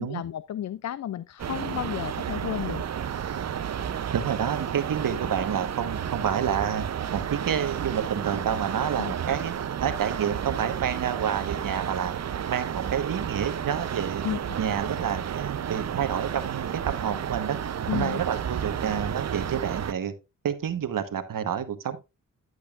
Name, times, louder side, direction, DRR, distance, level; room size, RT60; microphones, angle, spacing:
voice 1, 0.0-2.8 9.0-9.1 14.2-14.6 17.9-18.2, left 11 dB, 55° left, 0.4 m, -32 dB
sound 1, 1.4-19.9, right 8 dB, 50° right, 0.6 m, -32 dB
voice 2, 4.1-6.9 7.1-9.5 9.8-12.1 12.5-14.2 14.6-17.6 17.9-20.1 20.4-22.0, right 8 dB, 70° right, 1.3 m, -29 dB
11.0 x 8.0 x 2.4 m
cardioid pair, 85°, 34 cm